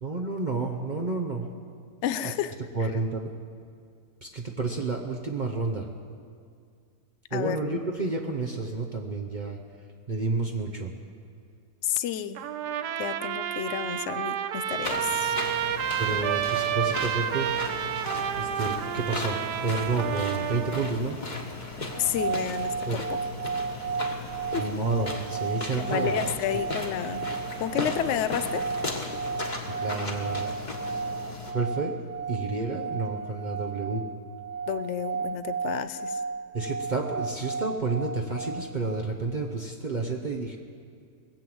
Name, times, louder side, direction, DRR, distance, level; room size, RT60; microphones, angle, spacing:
voice 1, 0.0-1.5 2.7-3.3 4.2-5.9 7.3-9.6 10.1-10.9 16.0-17.5 18.4-21.2 22.9-23.0 24.6-26.3 29.7-30.5 31.5-31.9 32.3-34.0 36.5-40.6, right 3 dB, 40° right, 0 dB, 0.8 m, -30 dB
voice 2, 2.0-2.6 7.3-7.6 11.8-12.4 13.0-15.4 15.7-15.8 22.0-23.2 24.5-24.6 25.8-27.3 27.6-28.6 34.7-36.2, left 10 dB, 65° left, 13 dB, 0.8 m, -30 dB
Trumpet, 12.4-21.0, right 10 dB, 90° right, 1.2 m, -30 dB
sound 1, 14.8-31.5, left 3 dB, 30° left, 1.4 m, -36 dB
sound 2, 21.9-39.0, right 5 dB, 70° right, 0.4 m, -34 dB
19.5 x 7.6 x 7.8 m, 2.2 s
omnidirectional pair, 1.6 m